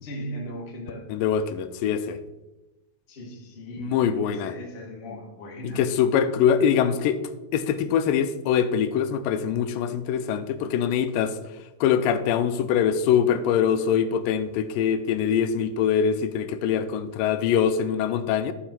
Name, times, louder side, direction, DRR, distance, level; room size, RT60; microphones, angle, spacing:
voice 1, 0.0-1.1 3.1-5.8, equal, 45° left, -1 dB, 0.7 m, -38 dB
voice 2, 1.1-2.2 3.9-4.5 5.8-7.2 7.5-11.4 11.8-18.5, left 8 dB, 85° left, 11 dB, 2.3 m, -23 dB
12.0 x 4.9 x 4.4 m, 1.0 s
omnidirectional pair, 4.0 m